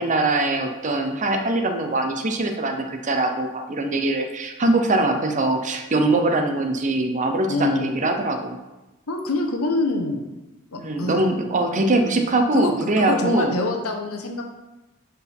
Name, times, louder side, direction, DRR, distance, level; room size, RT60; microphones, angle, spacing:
voice 1, 0.0-8.6 10.8-13.6, right 2 dB, 35° right, 5 dB, 0.7 m, -22 dB
voice 2, 7.5-7.9 9.1-10.2 10.7-11.2 12.5-14.4, left 2 dB, 80° left, 3 dB, 1.1 m, -25 dB
11.0 x 4.6 x 3.6 m, 1.0 s
head